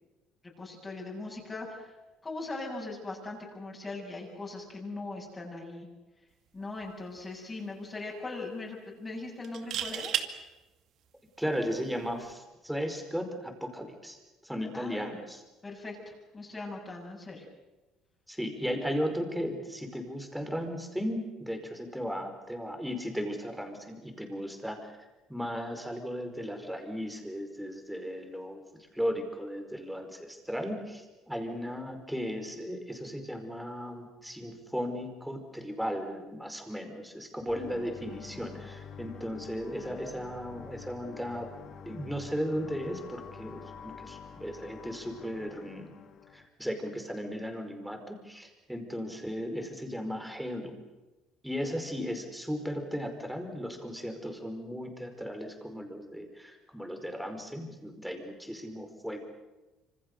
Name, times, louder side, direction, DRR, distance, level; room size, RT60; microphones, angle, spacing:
voice 1, 0.6-1.9 2.2-5.9 6.5-10.1 14.7-15.2 15.6-17.5, left 3 dB, 20° left, -1 dB, 7.5 m, -40 dB
sound 1, 6.6-6.8 7.2-7.3 9.4-10.3 12.1-12.3, right 10 dB, 60° right, 2.3 m, -32 dB
voice 2, 11.4-15.4 18.3-24.9 25.3-41.5 41.8-45.9 46.3-50.8 51.4-59.2, equal, ahead, 5 dB, 5.0 m, -36 dB
sound 2, 37.5-46.5, left 7 dB, 50° left, 2.4 m, -47 dB
27.0 x 25.5 x 6.8 m, 1.1 s
cardioid pair, 115°, 0 cm